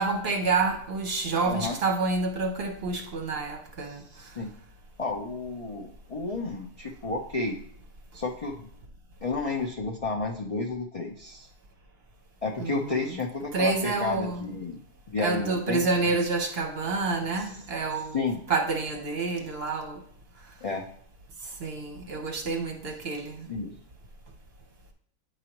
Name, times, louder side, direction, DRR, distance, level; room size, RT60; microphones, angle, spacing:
voice 1, 0.0-4.0 12.6-13.2 13.5-14.5 15.2-20.0 21.6-23.5, right 3 dB, 50° right, 0.9 m, -28 dB
voice 2, 1.5-1.8 3.9-4.5 5.0-7.6 8.1-8.5 9.2-11.5 12.4-14.8 15.1-15.8 17.4-17.5 18.1-18.4 20.6-20.9 23.5-23.7, left 3 dB, 60° left, 0.3 m, -31 dB
8.6 x 4.9 x 3.0 m
omnidirectional pair, 1.6 m